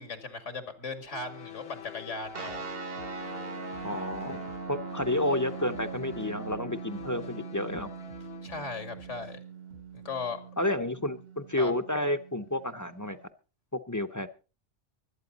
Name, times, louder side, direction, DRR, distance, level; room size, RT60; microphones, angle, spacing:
voice 1, 0.0-2.6 8.4-9.4 9.9-10.4 11.6-11.7, left 4 dB, 85° left, 8 dB, 2.4 m, -37 dB
sound 1, 1.1-8.5, left 10 dB, 60° left, 1.0 m, -47 dB
sound 2, 2.2-9.3 9.6-10.1, right 1 dB, 80° right, 4.0 m, -57 dB
sound 3, 2.3-13.2, right 5 dB, 55° right, 1.4 m, -41 dB
voice 2, 3.8-4.4 4.7-7.9 10.6-13.2 13.9-14.3, left 1 dB, 20° left, 10 dB, 0.6 m, -30 dB
23.5 x 8.8 x 4.0 m, 0.33 s
omnidirectional pair, 1.2 m